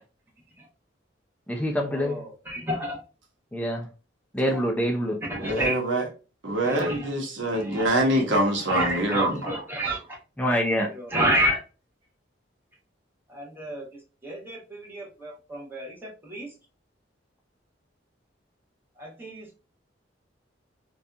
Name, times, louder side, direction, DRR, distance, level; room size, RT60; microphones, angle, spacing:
voice 1, 1.5-2.2 3.5-3.9 4.3-5.2 10.4-10.9, equal, 10° left, 0.3 m, -25 dB
voice 2, 2.5-3.0 5.3-5.8 6.6-7.0 7.7-7.9 8.7-10.0 11.1-11.6 13.3-13.8 14.2-15.9 16.3-16.5 19.0-19.4, right 1 dB, 10° right, 0.9 m, -29 dB
voice 3, 5.4-6.1 6.4-9.5, right 1 dB, 90° right, 0.8 m, -24 dB
2.6 x 2.3 x 2.4 m
head